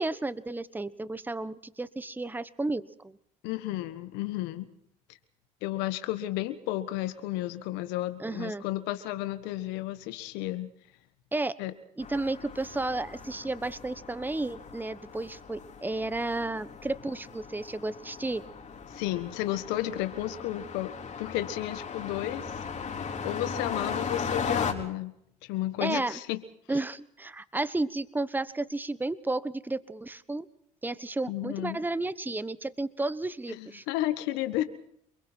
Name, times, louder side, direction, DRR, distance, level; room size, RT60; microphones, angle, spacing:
voice 1, 0.0-3.2 8.2-8.6 11.3-11.5 12.0-18.4 25.8-26.2 26.7-30.5 30.8-33.8, right 2 dB, 10° right, 15 dB, 1.1 m, -32 dB
voice 2, 3.4-4.7 5.6-10.7 11.6-11.7 18.9-20.9 21.2-25.1 25.4-26.4 31.3-31.8 33.5-34.6, left 15 dB, 75° left, 11 dB, 1.4 m, -32 dB
sound 1, 12.0-24.7, left 6 dB, 40° left, 3.8 m, -37 dB
29.0 x 21.5 x 4.5 m, 0.73 s
hypercardioid pair, 70°, 18 cm